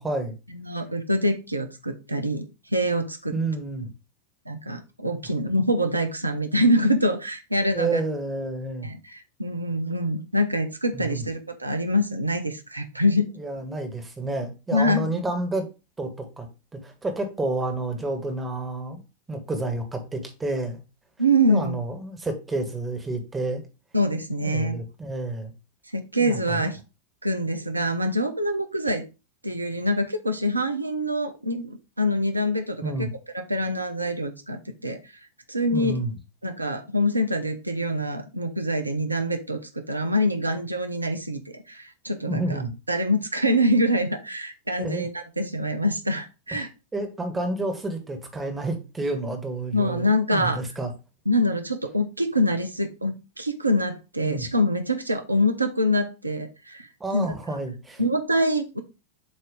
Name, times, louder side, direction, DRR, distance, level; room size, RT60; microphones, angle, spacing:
voice 1, 0.0-0.4 3.3-3.9 7.7-9.0 10.9-11.3 13.3-15.7 16.0-16.5 16.8-19.0 19.3-20.8 21.5-23.6 24.4-25.5 26.2-26.7 32.8-33.1 35.7-36.1 42.2-42.7 44.8-45.1 46.5-50.9 54.2-54.5 57.0-58.0, right 2 dB, 15° right, 5 dB, 1.4 m, -30 dB
voice 2, 0.5-2.4 2.7-3.3 4.5-8.0 8.8-13.3 14.7-15.2 21.2-21.8 23.9-24.8 25.9-26.8 27.2-29.0 29.4-33.1 33.3-35.0 35.5-36.0 36.4-39.6 39.9-42.6 42.9-46.7 49.7-50.6 51.3-57.3 58.0-58.8, equal, 85° right, 7 dB, 0.7 m, -25 dB
7.4 x 2.8 x 4.7 m, 0.29 s
figure-of-eight pair, 90°, 0 cm